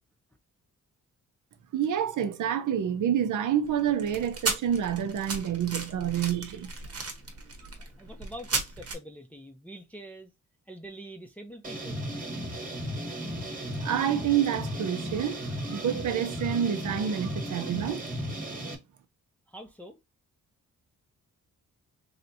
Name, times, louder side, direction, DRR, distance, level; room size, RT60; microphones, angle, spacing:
voice 1, 1.7-6.7 13.8-18.1, right 9 dB, 70° right, 0.7 m, -28 dB
sound 1, 3.7-8.9, right 4 dB, 50° right, 1.0 m, -35 dB
voice 2, 7.8-10.3 10.7-12.0 19.5-20.0, right 1 dB, 5° left, 0.5 m, -45 dB
sound 2, 11.6-18.8, equal, 25° right, 1.1 m, -35 dB
3.2 x 2.8 x 2.7 m
cardioid pair, 105°, 32 cm